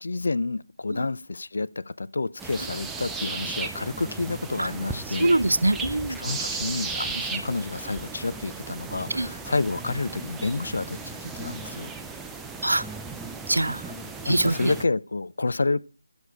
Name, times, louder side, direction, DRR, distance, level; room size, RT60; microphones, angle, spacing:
voice 1, 0.0-5.3 6.2-11.9 14.2-15.8, left 3 dB, 60° left, 0.4 m, -29 dB
sound 1, 2.4-14.8, right 4 dB, 5° right, 0.4 m, -35 dB
voice 2, 5.1-6.2 9.1-9.3 12.6-12.8 13.5-13.9 14.2-14.7, right 2 dB, 85° right, 0.5 m, -24 dB
11.0 x 6.2 x 4.8 m
figure-of-eight pair, 165°, 0 cm